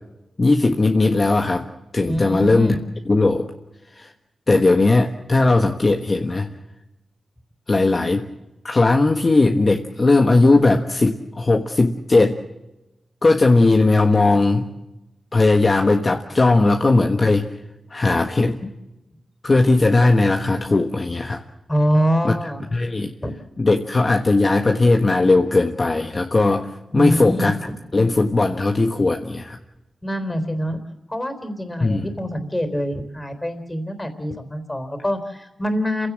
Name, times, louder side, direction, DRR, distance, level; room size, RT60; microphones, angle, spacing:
voice 1, 0.4-1.7 1.9-2.8 3.1-3.4 3.9-4.1 4.5-6.5 7.7-8.3 8.6-12.4 13.2-14.7 15.3-17.5 17.9-18.7 19.4-21.4 22.2-22.3 22.7-23.1 23.6-27.6 27.9-29.6 31.8-32.1, left 3 dB, 40° left, 4 dB, 1.4 m, -18 dB
voice 2, 2.1-2.8 21.7-22.6 23.2-23.3 26.9-27.6 30.0-30.8 31.1-36.1, equal, 15° left, 8 dB, 3.9 m, -24 dB
28.0 x 16.5 x 7.5 m, 0.98 s
cardioid pair, 75°, 0 cm